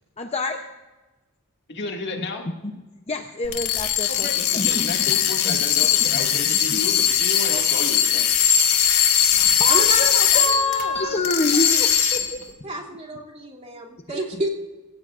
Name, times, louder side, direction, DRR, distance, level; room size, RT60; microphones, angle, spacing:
voice 1, 0.2-0.6 3.1-5.6 6.1-6.2 6.5-6.9 9.3-12.4 14.1-14.2, left 2 dB, 30° left, 5 dB, 0.8 m, -27 dB
voice 2, 1.7-2.4 4.0-8.3, left 2 dB, 50° left, 1 dB, 2.3 m, -32 dB
sound 1, 3.4-10.8 11.2-12.4, left 9 dB, 70° left, 1.9 m, -20 dB
voice 3, 9.7-11.9 12.6-14.5, right 1 dB, 30° right, -3 dB, 2.9 m, -32 dB
25.0 x 16.0 x 2.6 m, 1.2 s
head